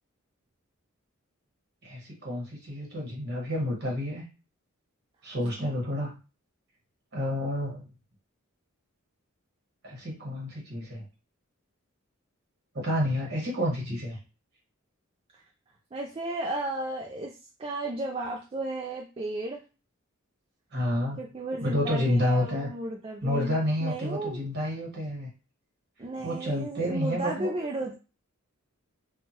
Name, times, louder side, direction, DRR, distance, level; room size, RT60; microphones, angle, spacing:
voice 1, 1.8-4.2 5.2-6.1 7.1-7.9 9.8-11.0 12.7-14.2 20.7-21.2 21.6-22.7 23.2-25.3 26.2-27.5, left 1 dB, 50° right, -2 dB, 1.3 m, -29 dB
voice 2, 15.9-19.6 21.2-24.4 26.0-28.0, right 2 dB, 25° right, 0 dB, 0.4 m, -34 dB
3.5 x 2.2 x 2.9 m, 0.32 s
head